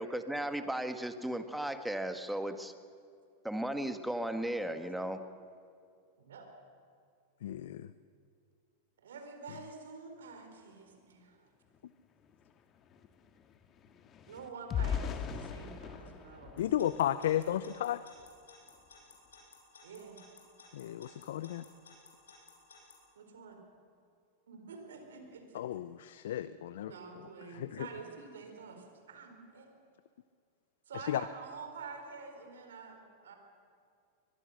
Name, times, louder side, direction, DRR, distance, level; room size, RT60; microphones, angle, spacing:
voice 1, 0.0-2.7 3.4-5.2, right 1 dB, 5° right, 8 dB, 1.6 m, -35 dB
voice 2, 6.2-6.5 9.0-11.4 14.3-16.6 19.8-20.2 23.2-23.6 24.5-25.7 26.8-29.7 30.9-33.3, right 4 dB, 80° right, 5 dB, 4.3 m, -48 dB
voice 3, 7.4-7.9 16.6-18.0 20.7-21.6 25.5-26.9 27.5-27.9 30.9-31.3, left 11 dB, 70° left, 15 dB, 0.6 m, -33 dB
sound 1, 11.7-11.8 12.1-17.6 18.1-18.3 18.7-18.9, left 7 dB, 35° left, 1.9 m, -40 dB
Alarm / Clock, 16.6-22.9, left 6 dB, 85° left, 7.0 m, -56 dB
23.0 x 22.5 x 6.6 m, 2.4 s
hypercardioid pair, 100°, 0 cm